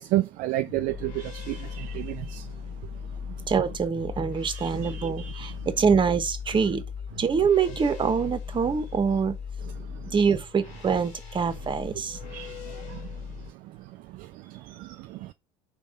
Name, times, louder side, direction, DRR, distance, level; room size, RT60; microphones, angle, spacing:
voice 1, 0.0-2.5 4.5-5.5 12.3-13.1 14.1-15.3, right 16 dB, 55° right, 0.4 m, -32 dB
sound 1, 0.7-13.5, left 6 dB, 70° left, 2.6 m, -38 dB
voice 2, 3.5-6.8 7.2-9.4 10.1-12.2, right 6 dB, 30° right, 1.1 m, -25 dB
5.3 x 3.5 x 5.1 m
hypercardioid pair, 70°, 16 cm